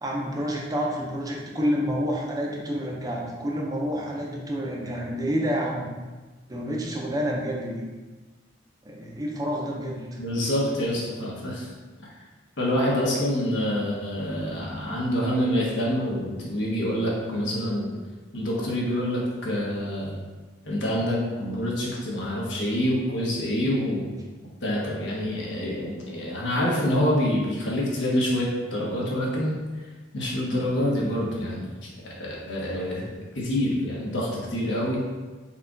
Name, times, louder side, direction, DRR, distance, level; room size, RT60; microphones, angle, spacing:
voice 1, 0.0-5.9 6.5-7.8 8.8-10.2, equal, 20° right, -2 dB, 0.6 m, -29 dB
voice 2, 10.2-11.7 12.6-17.9 18.3-20.2 20.6-24.1 24.6-29.6 30.1-35.0, equal, 75° left, -4 dB, 1.1 m, -26 dB
4.3 x 2.4 x 3.8 m, 1.3 s
head